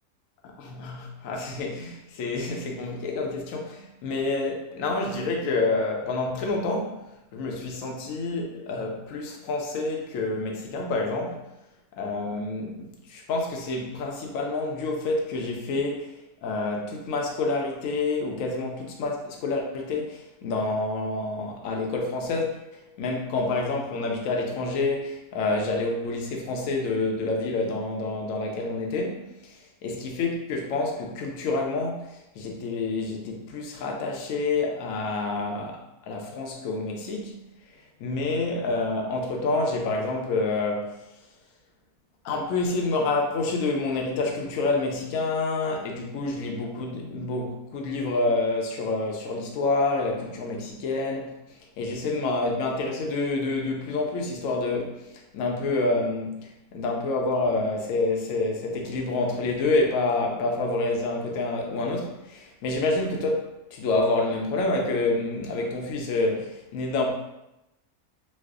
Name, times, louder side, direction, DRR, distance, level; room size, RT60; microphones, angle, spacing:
voice 1, 0.6-7.0 7.3-11.4 12.0-16.1 16.4-29.2 29.8-37.3 38.0-40.9 42.2-51.4 51.8-55.1 55.3-63.4 63.7-67.1, left 3 dB, 70° left, 1 dB, 0.9 m, -28 dB
3.2 x 2.0 x 3.5 m, 0.91 s
omnidirectional pair, 1.6 m